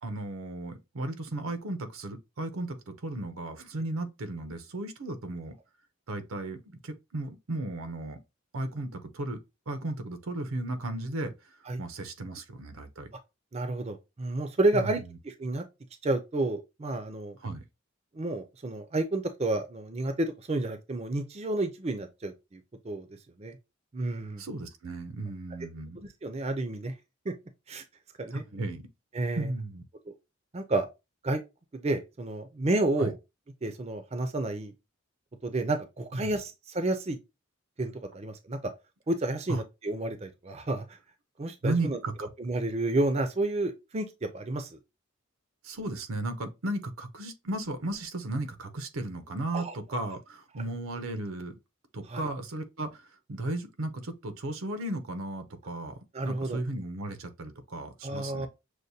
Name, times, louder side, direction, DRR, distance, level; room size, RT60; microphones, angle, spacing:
voice 1, 0.0-5.6 6.1-8.2 8.5-9.4 9.7-11.3 11.8-13.1 14.7-14.9 17.4-17.6 24.4-26.0 28.3-28.8 29.4-29.8 33.0-33.1 36.1-36.3 39.5-39.6 41.6-42.3 45.6-51.5 51.9-56.0 56.2-58.5, right 2 dB, 85° right, 0.7 m, -35 dB
voice 2, 13.5-15.6 16.0-17.4 18.1-23.1 23.4-23.6 23.9-24.4 26.0-26.9 27.7-27.8 28.2-28.4 29.1-29.5 30.5-30.9 31.2-31.4 31.7-33.1 33.6-34.7 35.4-37.2 37.8-38.6 39.1-41.0 41.4-42.0 42.4-44.8 49.5-49.7 52.1-52.2 56.1-56.6 58.0-58.5, right 2 dB, 30° right, 0.4 m, -30 dB
6.3 x 2.2 x 2.7 m
head